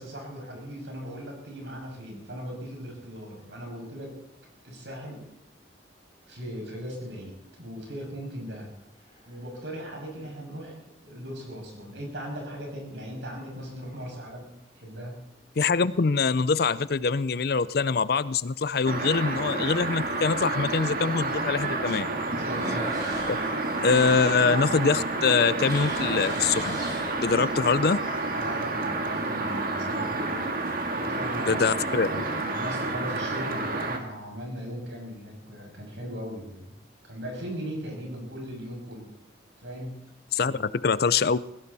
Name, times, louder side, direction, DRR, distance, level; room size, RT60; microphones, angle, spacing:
voice 1, 0.0-4.1 4.6-5.2 6.3-8.7 9.3-15.2 22.3-22.9 28.3-30.4 30.9-32.1 32.5-36.7 37.0-39.1 39.6-39.9 40.4-40.6, equal, 80° right, 0 dB, 6.7 m, -38 dB
sound 1, 8.7-9.4 10.1-10.2 15.4-15.9 16.3-16.4 17.0-17.1 17.3-17.4 19.0-19.1 22.4-24.9 25.2-27.6, equal, 20° right, 7.8 m, -39 dB
voice 2, 15.6-22.1 23.3-23.4 23.8-26.8 27.2-28.0 31.5-32.2 40.3-41.4, left 5 dB, 55° left, 17 dB, 0.5 m, -24 dB
sound 2, 18.9-34.0, right 2 dB, 50° right, 1.9 m, -29 dB
21.0 x 16.5 x 4.2 m, 0.84 s
head